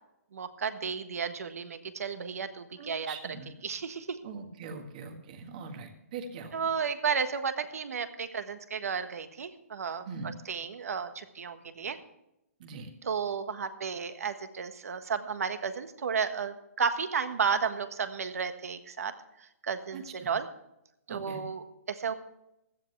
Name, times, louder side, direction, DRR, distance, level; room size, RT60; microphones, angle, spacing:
voice 1, 0.3-3.2 3.6-4.2 6.5-10.0 10.5-12.0 13.0-19.1 19.6-20.5 21.1-22.1, right 6 dB, 70° right, 10 dB, 1.5 m, -33 dB
voice 2, 2.8-3.5 4.2-6.7 10.0-10.3 12.6-12.9 19.9-20.3 21.1-21.4, right 4 dB, 30° right, 6 dB, 1.6 m, -42 dB
16.0 x 13.0 x 3.4 m, 0.86 s
hypercardioid pair, 170°, 8 cm